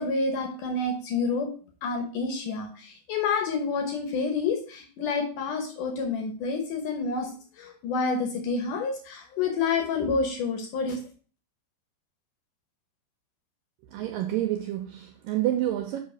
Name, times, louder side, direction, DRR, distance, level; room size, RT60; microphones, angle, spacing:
voice 1, 0.0-1.5 1.8-7.3 7.6-11.0, left 4 dB, 65° left, 2.2 m, -28 dB
voice 2, 13.9-16.0, right 13 dB, 80° right, 2.0 m, -28 dB
5.6 x 5.5 x 6.4 m
omnidirectional pair, 4.7 m